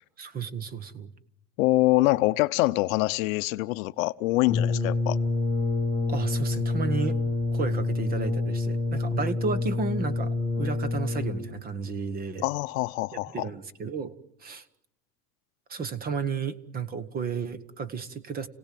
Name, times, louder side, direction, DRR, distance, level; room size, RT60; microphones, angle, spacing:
voice 1, 0.2-1.1 6.1-7.2 7.5-12.4 13.3-14.6 15.7-18.5, right 5 dB, 20° right, 1.1 m, -33 dB
voice 2, 1.6-5.2 12.4-13.5, left 19 dB, 65° left, 0.8 m, -25 dB
Brass instrument, 4.5-11.6, left 3 dB, 10° left, 3.7 m, -27 dB
30.0 x 17.5 x 7.5 m
supercardioid pair, 150°, 44 cm